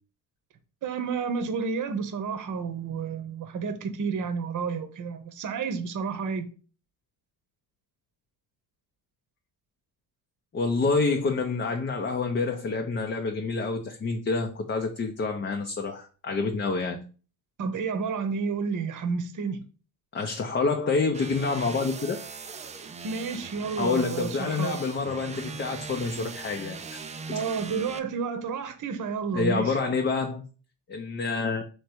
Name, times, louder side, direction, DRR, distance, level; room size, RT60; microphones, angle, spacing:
voice 1, 0.8-6.5 17.6-19.6 23.0-24.8 27.3-29.8, right 5 dB, 40° right, 0.9 m, -30 dB
voice 2, 10.5-17.0 20.1-22.2 23.8-27.0 29.3-30.4 30.9-31.6, left 4 dB, 25° left, 0.6 m, -27 dB
sound 1, 21.1-28.0, right 5 dB, 15° right, 0.4 m, -40 dB
3.3 x 3.2 x 4.4 m
hypercardioid pair, 70°, 48 cm